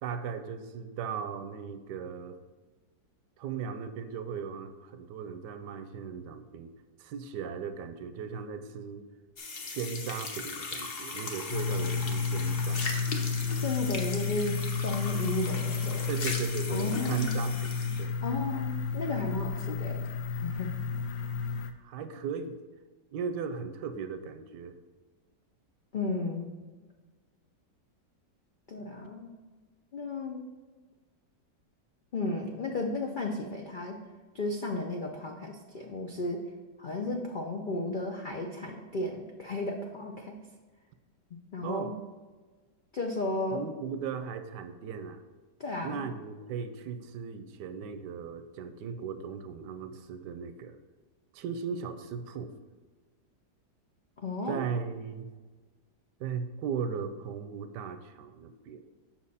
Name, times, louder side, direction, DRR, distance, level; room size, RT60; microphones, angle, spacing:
voice 1, 0.0-2.4 3.4-6.7 7.0-9.1 9.6-13.0 16.1-18.1 21.8-22.6 23.1-24.8 41.6-41.9 43.5-45.2 45.8-50.8 51.3-52.5 54.5-55.3 56.2-58.8, right 6 dB, 80° right, 9 dB, 1.2 m, -37 dB
sound 1, 9.4-18.1, left 4 dB, 45° left, 0.8 m, -39 dB
sound 2, 11.5-21.7, left 5 dB, 70° left, 1.0 m, -32 dB
voice 2, 13.6-16.1 16.7-17.4 18.2-20.0 20.3-20.7 25.9-26.5 28.7-29.3 29.9-30.4 32.1-34.0 34.3-36.4 36.8-40.4 41.5-41.9 42.9-43.6 45.6-46.0 54.2-54.6, left 2 dB, 85° left, 1 dB, 0.4 m, -34 dB
7.3 x 6.0 x 4.1 m, 1.3 s
omnidirectional pair, 1.9 m